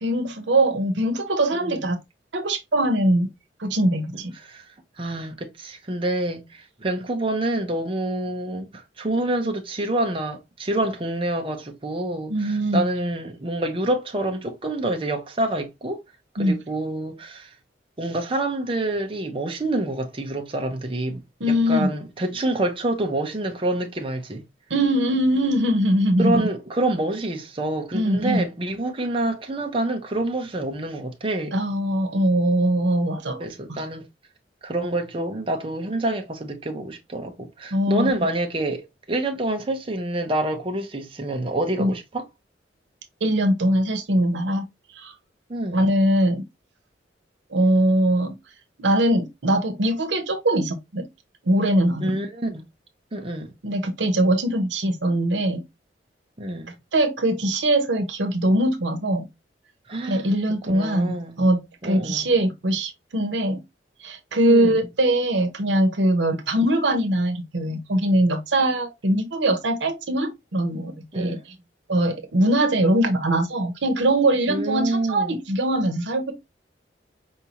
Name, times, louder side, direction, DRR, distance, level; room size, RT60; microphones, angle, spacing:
voice 1, 0.0-2.0 2.3-3.3 3.6-4.3 12.3-12.8 16.4-16.6 21.4-21.9 24.7-26.5 27.9-28.4 31.5-33.8 37.7-38.3 41.8-41.9 43.2-44.6 45.0-45.1 45.7-46.4 47.5-48.3 48.8-51.1 51.4-52.1 53.6-55.6 56.9-59.2 60.0-63.6 64.0-71.4 71.9-76.3, right 1 dB, 85° right, 0.8 m, -22 dB
voice 2, 1.5-1.9 4.4-4.7 5.0-16.0 16.4-17.5 18.0-21.2 21.5-24.4 26.2-31.6 33.4-34.0 34.6-42.2 45.5-45.9 52.0-52.7 53.1-53.5 56.4-56.7 59.9-60.3 60.7-61.4 61.8-62.3 64.5-64.9 71.1-71.4 74.5-75.3, right 1 dB, 30° right, 0.7 m, -27 dB
4.7 x 2.7 x 2.8 m
head